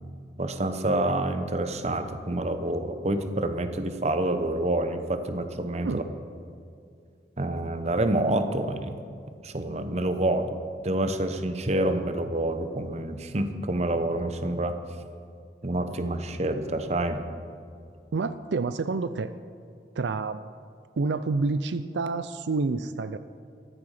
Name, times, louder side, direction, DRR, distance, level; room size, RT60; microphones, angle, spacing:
voice 1, 0.4-6.0 7.4-8.9 9.4-10.5 10.8-14.7 15.6-17.2, right 1 dB, 40° right, 8 dB, 1.0 m, -27 dB
voice 2, 18.1-19.3 20.0-20.5 21.0-23.2, right 3 dB, 85° right, 12 dB, 0.5 m, -28 dB
14.5 x 14.0 x 5.0 m, 2.4 s
head